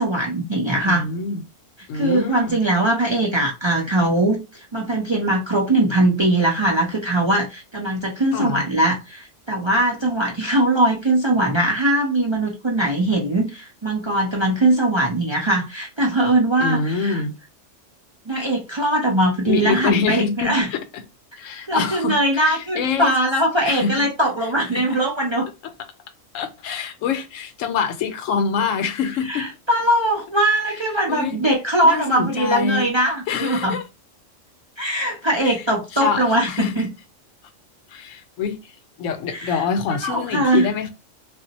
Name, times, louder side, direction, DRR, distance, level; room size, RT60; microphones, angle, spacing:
voice 1, 0.0-1.1 1.9-17.2 18.3-20.7 21.7-25.5 29.2-33.8 34.8-36.9 39.3-39.6 39.9-40.7, right 1 dB, 45° right, 0.3 m, -21 dB
voice 2, 0.9-1.4 1.9-2.6 8.3-8.6 16.6-17.3 19.5-21.0 21.4-22.2 22.5-23.1 23.6-24.1 24.7-25.0 26.3-29.5 31.1-31.4 31.8-32.9 33.3-33.8 35.4-35.6 35.9-36.9 37.9-38.7 39.0-40.9, left 6 dB, 80° left, 1.0 m, -25 dB
2.4 x 2.1 x 3.9 m
omnidirectional pair, 1.3 m